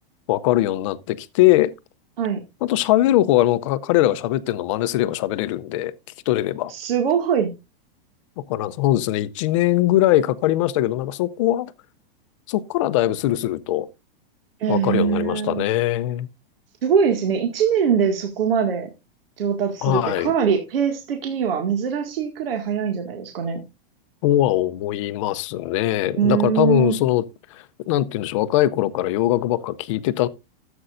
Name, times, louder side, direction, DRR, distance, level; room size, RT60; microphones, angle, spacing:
voice 1, 0.3-1.7 2.6-5.9 6.3-6.7 8.5-11.7 12.5-13.9 14.7-16.3 19.8-20.3 24.2-27.2 27.5-30.3, left 14 dB, 35° left, 0.5 m, -21 dB
voice 2, 6.7-7.5 14.6-15.6 16.8-18.9 19.4-23.6 26.1-27.0, right 7 dB, 85° right, 2.0 m, -22 dB
14.0 x 7.9 x 2.5 m
supercardioid pair, 170°, 29 cm